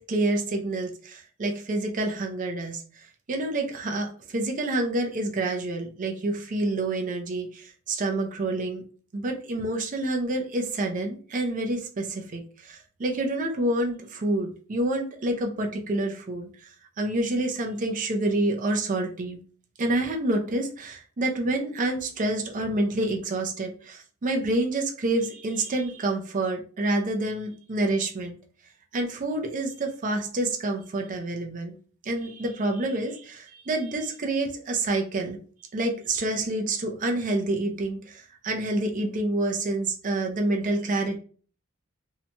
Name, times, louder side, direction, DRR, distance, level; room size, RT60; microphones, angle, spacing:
voice 1, 0.1-2.8 3.3-8.8 9.1-16.7 17.0-19.4 19.8-28.4 28.9-31.7 32.0-35.4 35.7-41.2, right 2 dB, 35° right, 2 dB, 0.5 m, -28 dB
2.7 x 2.2 x 2.7 m, 0.42 s
head